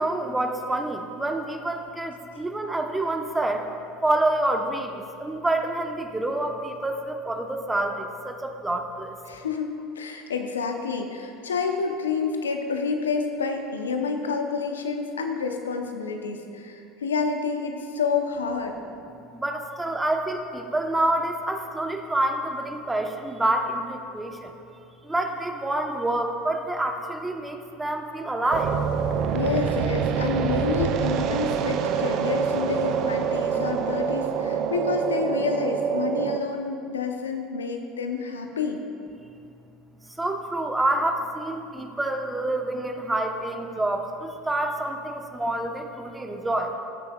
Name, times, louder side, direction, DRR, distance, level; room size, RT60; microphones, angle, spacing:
voice 1, 0.0-3.6 4.0-9.1 19.3-24.5 25.0-28.7 40.2-46.7, right 1 dB, 10° right, 4 dB, 1.0 m, -27 dB
voice 2, 9.3-9.7 10.0-18.8 29.3-38.8, left 5 dB, 85° left, 4 dB, 0.7 m, -28 dB
sound 1, 28.5-36.4, right 7 dB, 50° right, 0.5 m, -26 dB
16.5 x 6.9 x 2.4 m, 2.6 s
hypercardioid pair, 75°, 0 cm